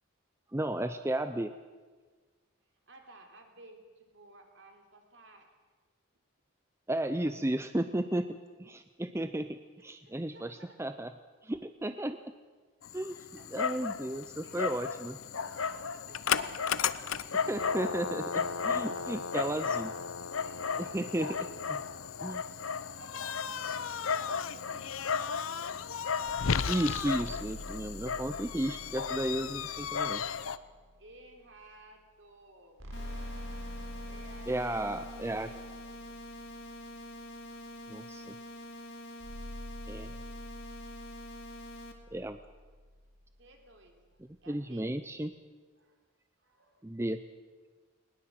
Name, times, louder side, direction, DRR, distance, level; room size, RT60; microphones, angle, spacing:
voice 1, 0.5-1.5 6.9-11.1 11.4-12.3 12.9-13.2 13.5-15.2 17.5-19.9 20.8-21.4 21.7-21.8 22.2-22.6 26.7-30.2 34.5-35.5 37.9-38.3 39.9-40.1 42.1-42.4 44.5-45.3 46.8-47.2, right 1 dB, 10° right, 10 dB, 0.6 m, -34 dB
voice 2, 2.9-5.6 10.0-10.8 13.1-14.9 15.4-16.6 17.0-17.4 20.4-21.8 22.0-25.3 29.4-30.0 31.0-32.9 34.0-34.9 35.2-35.6 37.5-37.7 43.4-44.9 45.8-46.0 46.4-46.9, right 2 dB, 60° right, 4 dB, 3.5 m, -56 dB
Dog, 12.8-30.6, left 6 dB, 80° left, 0.8 m, -34 dB
sound 1, 27.0-31.4 32.8-37.6 39.2-43.6, left 1 dB, 75° right, 4.3 m, -46 dB
sound 2, 32.9-41.9, equal, 55° left, 2.6 m, -46 dB
20.5 x 20.0 x 7.7 m, 1.4 s
head